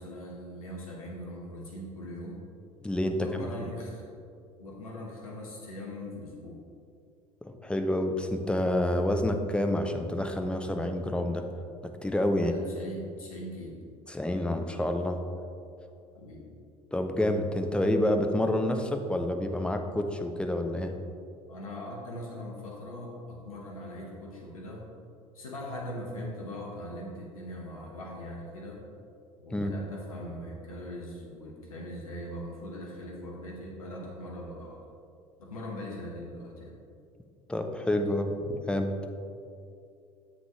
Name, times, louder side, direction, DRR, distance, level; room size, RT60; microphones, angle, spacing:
voice 1, 0.0-2.4 3.1-4.0 4.6-6.6 12.3-13.9 16.1-16.5 21.5-24.8 25.3-28.8 29.4-34.8 35.4-36.7, left 1 dB, 75° left, -2 dB, 1.0 m, -41 dB
voice 2, 2.8-3.3 7.5-11.4 11.8-12.5 14.1-15.2 16.9-20.9 29.5-29.7 37.5-38.9, left 1 dB, 5° left, 5 dB, 0.6 m, -28 dB
7.2 x 6.3 x 3.0 m, 2.5 s
figure-of-eight pair, 65°, 18 cm